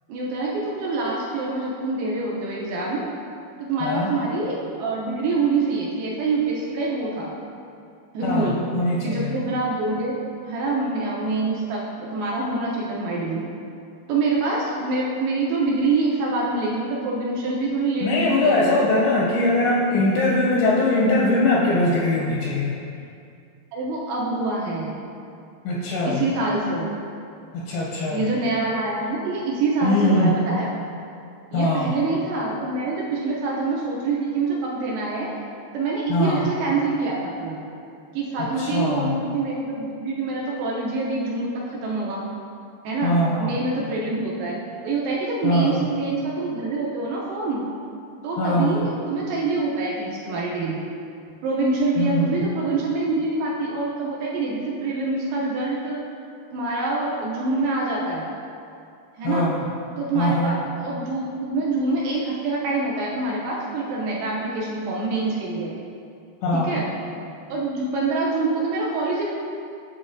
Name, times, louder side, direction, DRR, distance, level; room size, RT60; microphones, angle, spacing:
voice 1, 0.1-3.1 3.6-7.3 8.1-8.6 9.0-10.2 10.5-13.5 14.1-18.9 23.7-24.9 26.1-26.9 28.1-30.7 31.5-35.3 35.7-37.6 38.1-42.2 42.8-44.6 44.8-47.6 48.2-50.8 51.4-56.0 56.5-58.3 59.2-59.5 60.0-65.7 66.5-66.9 67.5-69.3, right 3 dB, 85° right, -4 dB, 2.0 m, -25 dB
voice 2, 3.8-4.1 8.2-9.4 18.0-22.8 25.7-26.2 27.5-28.3 29.8-30.3 31.5-31.9 36.1-36.4 38.6-39.2 43.0-43.6 45.4-45.9 48.4-48.9 52.0-52.4 59.2-59.6 60.2-60.6 66.4-66.8, left 1 dB, 80° left, -4 dB, 2.1 m, -21 dB
9.3 x 3.9 x 2.6 m, 2.5 s
omnidirectional pair, 4.9 m